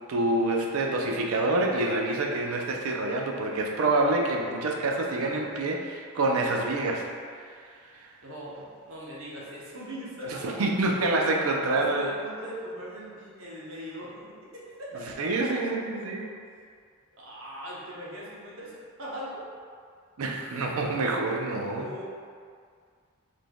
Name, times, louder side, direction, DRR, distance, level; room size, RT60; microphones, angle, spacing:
voice 1, 0.1-7.1 7.9-8.1 10.4-12.1 15.2-16.4 20.2-21.9, right 2 dB, 90° right, 0 dB, 0.5 m, -27 dB
voice 2, 8.2-10.5 10.9-11.1 11.7-14.1 14.5-15.0 17.2-18.7 19.0-19.4 21.8-22.0, equal, 70° right, -6 dB, 0.9 m, -40 dB
4.0 x 3.3 x 2.2 m, 2.1 s
head